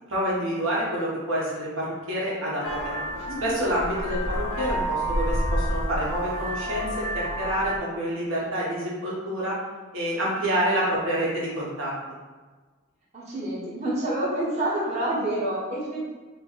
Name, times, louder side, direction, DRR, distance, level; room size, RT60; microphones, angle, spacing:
voice 1, 0.1-3.0 3.4-9.6 9.9-11.9, equal, 65° right, -6 dB, 1.3 m, -28 dB
Vehicle horn car horn honking, 2.6-7.8, equal, 90° left, 0.9 m, -29 dB
voice 2, 3.1-3.6 13.1-16.1, right 1 dB, 30° right, -9 dB, 1.0 m, -28 dB
5.2 x 2.1 x 3.9 m, 1.3 s
head